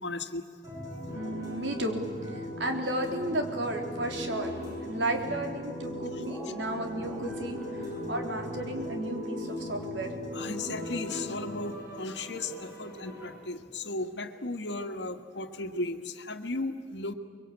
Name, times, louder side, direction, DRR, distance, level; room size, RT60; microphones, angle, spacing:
voice 1, 0.0-0.4 6.1-6.2 10.3-17.1, left 2 dB, 80° left, 7 dB, 1.6 m, -35 dB
sound 1, 0.6-13.3, left 1 dB, 20° right, 7.5 m, -38 dB
voice 2, 1.1-2.0 2.3-4.5 4.9-10.1, right 1 dB, 85° right, 3 dB, 3.7 m, -33 dB
24.0 x 22.5 x 8.7 m, 2.1 s
head